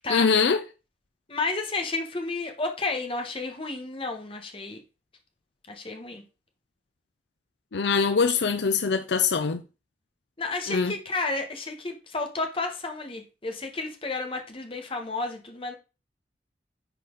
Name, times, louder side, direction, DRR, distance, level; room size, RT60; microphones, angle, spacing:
voice 1, 0.1-0.6 7.7-9.6 10.7-10.9, left 5 dB, 75° left, 0.6 m, -23 dB
voice 2, 1.3-4.8 5.7-6.2 10.4-15.7, left 3 dB, 30° left, 1.3 m, -31 dB
10.0 x 4.3 x 3.9 m
head